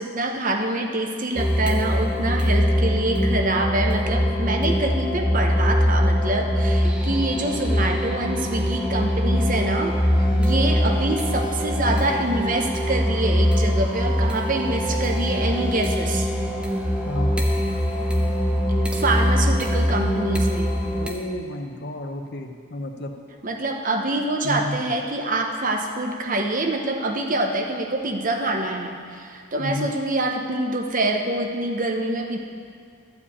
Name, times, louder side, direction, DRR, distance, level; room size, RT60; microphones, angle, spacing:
voice 1, 0.0-9.9 10.2-16.3 18.9-20.7 23.4-32.4, right 2 dB, 40° right, 3 dB, 0.9 m, -25 dB
sound 1, 1.3-21.1, equal, 5° right, 0.8 m, -22 dB
voice 2, 17.1-17.5 20.9-23.1 24.4-24.9 29.6-29.9, left 1 dB, 50° left, 4 dB, 0.9 m, -31 dB
12.0 x 4.9 x 8.6 m, 2.1 s
head